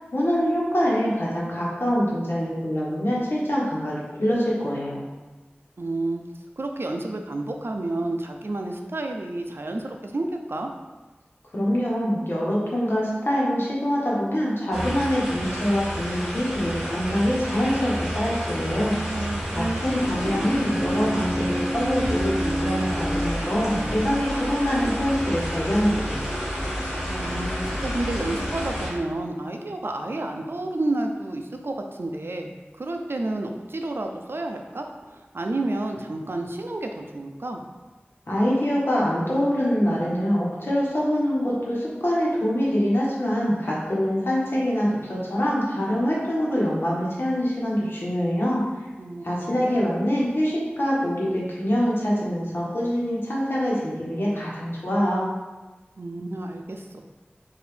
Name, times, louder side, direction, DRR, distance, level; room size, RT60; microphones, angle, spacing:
voice 1, 0.1-5.0 11.5-19.0 19.5-26.3 38.3-48.6 49.2-55.2, equal, 65° left, -6 dB, 1.2 m, -24 dB
voice 2, 5.8-6.2 6.6-10.7 19.1-19.8 20.2-20.6 27.1-27.5 27.8-37.6 49.0-49.9 56.0-57.0, right 2 dB, 70° right, 3 dB, 0.4 m, -30 dB
sound 1, 14.7-28.9, equal, 10° right, 1.4 m, -31 dB
sound 2, 16.4-28.9, equal, 80° left, 0.8 m, -33 dB
4.8 x 2.7 x 3.3 m, 1.2 s
wide cardioid pair, 45°, 4 cm